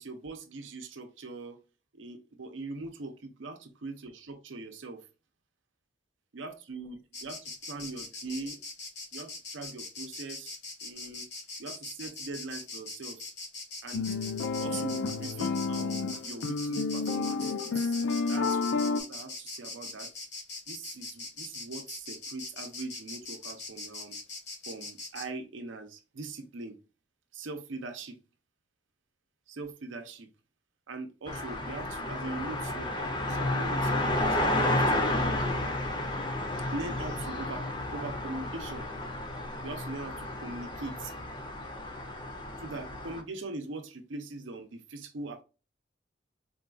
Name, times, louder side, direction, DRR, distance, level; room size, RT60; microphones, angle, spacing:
voice 1, 0.0-1.6 1.9-5.0 6.3-8.6 9.1-11.3 11.6-13.2 13.8-14.1 14.6-18.0 18.3-18.6 18.9-20.1 20.7-24.2 24.7-26.8 27.3-28.2 29.5-30.3 30.9-35.8 36.7-38.9 39.6-41.1 42.6-45.4, right 3 dB, 85° right, 0.6 m, -41 dB
Insect, 7.1-25.3, left 3 dB, 60° left, 1.0 m, -41 dB
sound 1, 13.9-19.0, left 4 dB, 80° left, 0.4 m, -30 dB
sound 2, 31.3-43.2, left 1 dB, 25° left, 0.5 m, -31 dB
3.8 x 2.3 x 2.4 m
head